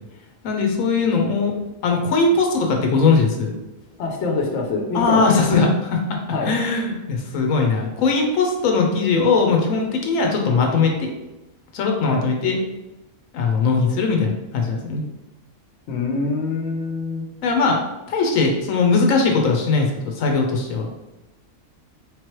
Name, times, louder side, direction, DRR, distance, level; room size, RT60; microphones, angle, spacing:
voice 1, 0.4-1.6 1.8-3.5 4.9-6.2 6.5-11.1 11.7-12.6 13.3-15.0 17.4-17.8 18.1-20.9, left 4 dB, 90° left, 2 dB, 1.1 m, -20 dB
voice 2, 4.0-5.4 6.3-6.5 12.0-12.2 15.9-17.3, left 3 dB, 65° left, 1 dB, 0.9 m, -25 dB
3.6 x 3.1 x 3.0 m, 0.99 s
omnidirectional pair, 1.4 m